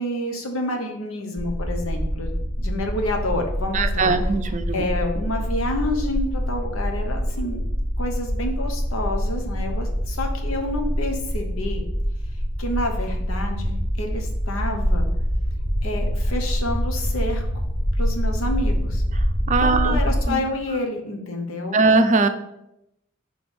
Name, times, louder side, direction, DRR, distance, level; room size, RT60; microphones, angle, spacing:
voice 1, 0.0-2.3 2.6-7.7 8.0-11.8 12.6-15.1 15.8-17.5 18.0-19.0 19.6-21.8, left 1 dB, 85° left, 2 dB, 1.1 m, -29 dB
sound 1, 1.4-20.2, equal, 35° left, 1.8 m, -25 dB
voice 2, 3.7-4.9 19.5-20.0 20.3-20.4 21.7-22.3, right 3 dB, 35° right, 8 dB, 0.5 m, -20 dB
6.1 x 3.4 x 5.3 m, 0.84 s
head